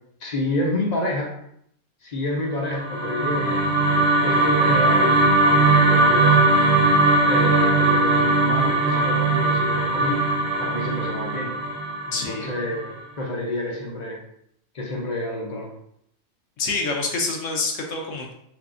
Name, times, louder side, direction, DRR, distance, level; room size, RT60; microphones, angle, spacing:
voice 1, 0.2-1.4 2.0-3.7 4.2-5.2 5.5-6.5 7.2-10.2 10.6-11.6 12.1-14.2 14.7-15.7, left 1 dB, 45° left, 0 dB, 0.5 m, -28 dB
sound 1, 2.6-12.9, right 2 dB, 55° right, 1.1 m, -19 dB
voice 2, 12.1-12.5 16.6-18.3, left 3 dB, 70° left, 1 dB, 1.0 m, -27 dB
3.4 x 3.3 x 2.5 m, 0.71 s
omnidirectional pair, 1.4 m